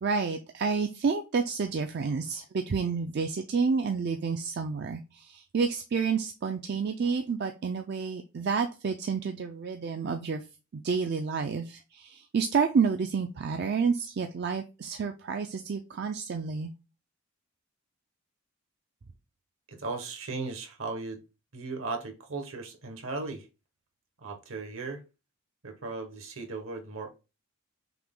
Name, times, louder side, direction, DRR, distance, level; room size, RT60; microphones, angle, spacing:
voice 1, 0.0-10.4 10.7-16.7, right 5 dB, 50° right, 0.4 m, -29 dB
voice 2, 19.7-21.2 21.5-23.5 24.2-25.0 25.6-27.1, right 3 dB, 70° right, 1.1 m, -37 dB
5.8 x 2.2 x 3.6 m
head